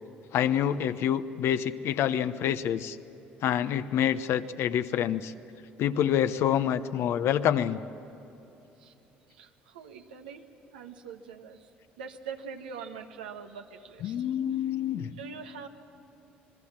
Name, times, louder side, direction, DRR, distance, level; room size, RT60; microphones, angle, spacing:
voice 1, 0.3-3.0 3.4-5.3 5.8-7.8 14.0-15.1, left 10 dB, 65° left, 11 dB, 1.0 m, -27 dB
voice 2, 9.3-10.4 10.7-11.7 12.0-14.4 15.1-15.7, right 6 dB, 90° right, 4 dB, 1.4 m, -43 dB
27.0 x 20.5 x 7.5 m, 3.0 s
hypercardioid pair, 60°, 5 cm